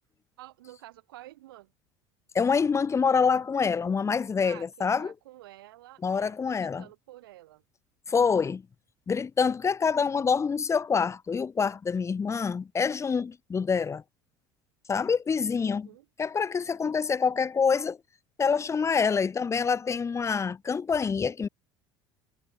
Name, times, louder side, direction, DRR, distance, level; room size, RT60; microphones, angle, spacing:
voice 1, 0.4-1.7 4.4-7.6 15.6-16.1, right 16 dB, 85° right, 4.2 m, -50 dB
voice 2, 2.3-5.1 6.0-6.9 8.1-8.6 9.1-14.0 14.9-15.9 16.2-18.0 18.4-21.5, left 5 dB, 25° left, 0.9 m, -26 dB
hypercardioid pair, 85°, 12 cm